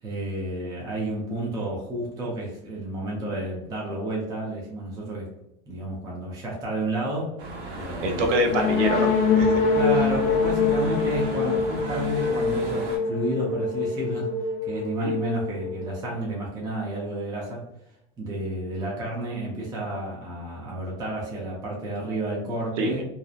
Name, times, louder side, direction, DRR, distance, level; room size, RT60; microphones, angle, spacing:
voice 1, 0.0-5.3 5.7-7.4 7.7-8.3 9.7-17.6 18.2-23.0, right 1 dB, 10° right, -4 dB, 0.4 m, -31 dB
sound 1, 7.4-13.0, right 2 dB, 65° right, 1.0 m, -36 dB
voice 2, 8.0-9.6 11.0-11.1 15.0-15.1 22.8-23.0, right 1 dB, 90° right, 4 dB, 0.7 m, -25 dB
sound 2, 8.5-16.2, left 4 dB, 80° left, 0.7 m, -24 dB
2.8 x 2.0 x 2.3 m, 0.83 s
supercardioid pair, 130°, 35 cm